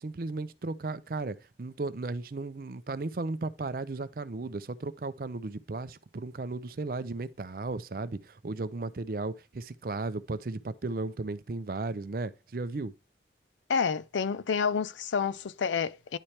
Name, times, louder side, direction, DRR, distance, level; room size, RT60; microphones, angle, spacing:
voice 1, 0.0-12.9, right 3 dB, 50° right, 0.5 m, -35 dB
voice 2, 13.7-16.2, left 6 dB, 90° left, 0.4 m, -29 dB
10.0 x 4.3 x 3.2 m
head